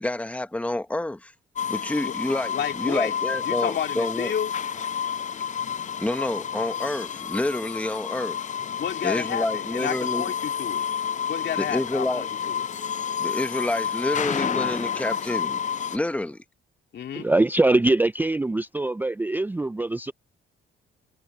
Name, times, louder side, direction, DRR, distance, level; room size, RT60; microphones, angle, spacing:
voice 1, 0.0-1.3 1.7-4.3 6.0-8.4 9.0-10.3 11.6-12.3 13.2-15.6 15.9-16.4, left 1 dB, 5° left, 1.3 m, -28 dB
sound 1, 1.6-16.0, left 8 dB, 40° left, 0.6 m, -30 dB
voice 2, 2.5-3.2 3.4-4.6 8.8-10.9 11.3-12.6 16.9-17.3, left 9 dB, 60° left, 2.5 m, -31 dB
voice 3, 17.1-20.1, right 2 dB, 10° right, 0.4 m, -22 dB
cardioid pair, 90°, 20 cm